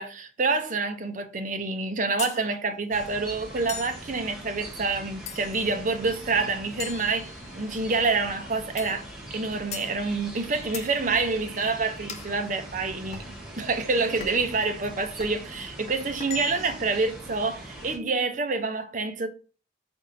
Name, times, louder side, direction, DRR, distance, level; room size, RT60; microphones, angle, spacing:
voice 1, 0.0-9.0 9.3-13.2 13.6-19.3, right 3 dB, 40° right, 0.6 m, -27 dB
sound 1, 2.2-2.4 3.7-4.0 5.3-5.7 6.8-7.7 8.8-9.0 9.7-9.9 10.7-10.9 12.1-12.3 13.1-13.3 14.2-14.5 15.2-15.4 16.2-16.8, left 7 dB, 35° left, 0.4 m, -39 dB
sound 2, 2.9-18.0, right 1 dB, 5° right, 1.4 m, -42 dB
5.1 x 3.5 x 2.7 m
head